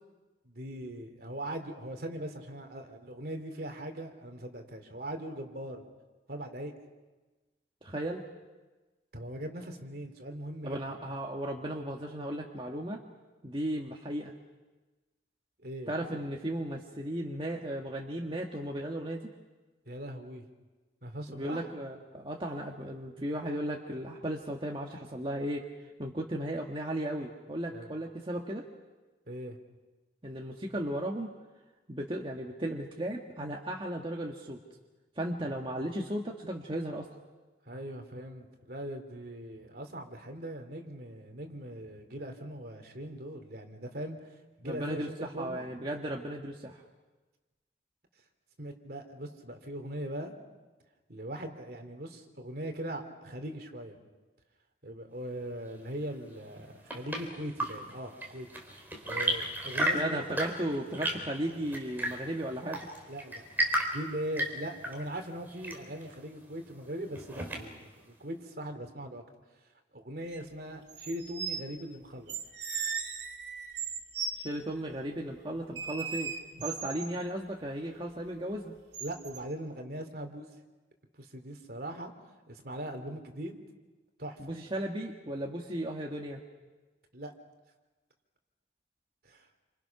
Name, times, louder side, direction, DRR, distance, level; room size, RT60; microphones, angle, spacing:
voice 1, 0.4-5.8 6.3-6.7 9.1-11.1 15.6-16.2 19.9-20.4 21.0-21.7 27.7-27.9 29.3-29.6 35.4-35.9 37.7-44.3 44.6-45.6 48.6-50.3 51.1-54.0 54.8-58.5 59.1-60.2 63.1-63.4 63.9-67.8 68.1-69.2 69.9-72.4 79.0-80.5 81.2-82.1 82.5-83.6 84.2-84.6 87.1-87.3 89.2-89.5, right 1 dB, 60° right, 5 dB, 2.9 m, -40 dB
voice 2, 7.8-8.2 10.6-13.0 13.4-14.3 15.9-19.3 21.3-25.7 26.0-28.7 30.2-31.3 31.9-34.6 35.2-37.1 44.6-46.8 59.9-62.9 74.4-78.7 84.4-86.4, right 1 dB, 30° right, -1 dB, 1.6 m, -35 dB
Chirp tweet / Engine / Tap, 56.4-68.0, right 1 dB, 10° right, 3.9 m, -35 dB
sound 1, 70.3-70.4 70.9-71.6 72.3-74.3 75.8-77.1 78.9-79.4, right 6 dB, 75° right, 2.6 m, -37 dB
29.0 x 26.5 x 6.0 m, 1.2 s
head